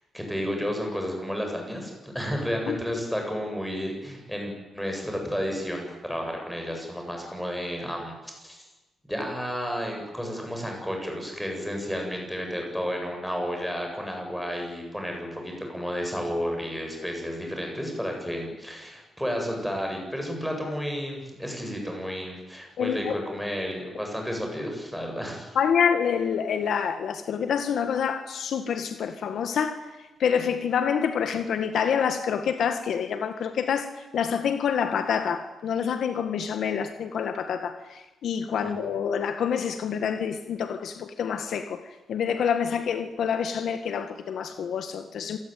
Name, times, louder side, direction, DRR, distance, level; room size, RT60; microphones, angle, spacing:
voice 1, 0.1-8.1 8.4-8.6 9.0-25.5 38.6-38.8, equal, ahead, 7.8 m, -32 dB
voice 2, 22.8-23.2 25.6-41.8 42.1-45.4, left 7 dB, 60° left, 1.9 m, -27 dB
27.5 x 19.0 x 9.4 m
cardioid pair, 150°, 0 cm